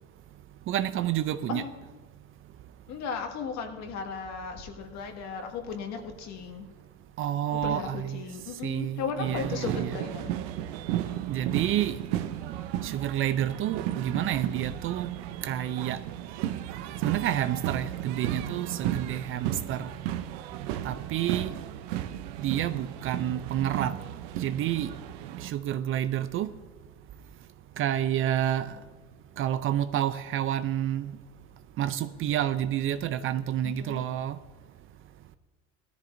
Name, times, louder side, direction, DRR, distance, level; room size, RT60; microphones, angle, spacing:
voice 1, 0.7-1.6 7.2-8.2 8.6-9.9 11.3-12.0 12.8-15.1 15.4-16.0 17.0-19.9 20.8-21.5 22.4-23.9 24.4-24.9 25.4-26.5 27.8-28.8 29.4-31.1 31.8-34.4, right 11 dB, 40° right, 13 dB, 0.5 m, -29 dB
voice 2, 2.9-6.7 7.5-10.4 33.6-34.0, left 6 dB, 60° left, 3 dB, 1.9 m, -36 dB
sound 1, 9.2-25.5, right 12 dB, 80° right, 0.7 m, -34 dB
17.0 x 13.5 x 2.6 m, 1.3 s
supercardioid pair, 120°, 32 cm